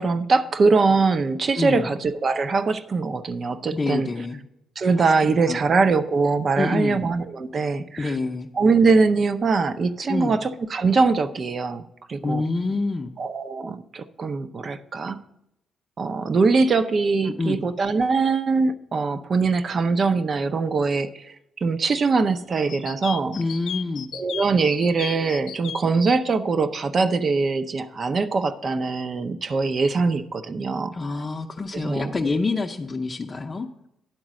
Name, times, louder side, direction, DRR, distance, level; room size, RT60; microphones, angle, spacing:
voice 1, 0.0-4.1 4.8-8.2 8.6-12.4 13.2-15.2 16.0-23.4 24.1-30.9 31.7-32.1, right 4 dB, 45° right, 12 dB, 0.6 m, -22 dB
voice 2, 1.6-1.9 3.7-4.4 5.3-5.6 6.6-7.0 8.0-8.5 10.1-10.4 12.2-13.1 17.2-17.6 23.3-24.1 30.9-33.7, left 3 dB, 30° left, 1 dB, 0.6 m, -27 dB
sound 1, 22.7-25.8, left 10 dB, 70° left, 0.5 m, -34 dB
10.5 x 4.0 x 7.5 m, 0.81 s
cardioid pair, 90°, 0 cm